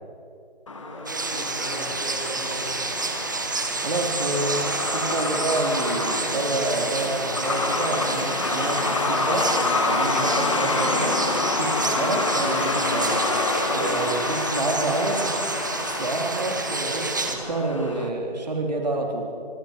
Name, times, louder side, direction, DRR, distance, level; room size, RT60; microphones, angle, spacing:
Truck, 0.7-18.1, left 3 dB, 30° left, 1.4 m, -28 dB
voice 1, 0.7-2.7, equal, 10° left, -6 dB, 3.5 m, -38 dB
sound 1, 1.1-17.4, right 3 dB, 20° right, 1.1 m, -29 dB
voice 2, 3.8-9.5 9.9-11.2 11.5-13.2 13.7-15.3 15.8-19.3, right 2 dB, 40° right, 2 dB, 3.2 m, -28 dB
25.5 x 24.0 x 5.2 m, 2.5 s
figure-of-eight pair, 175°, 31 cm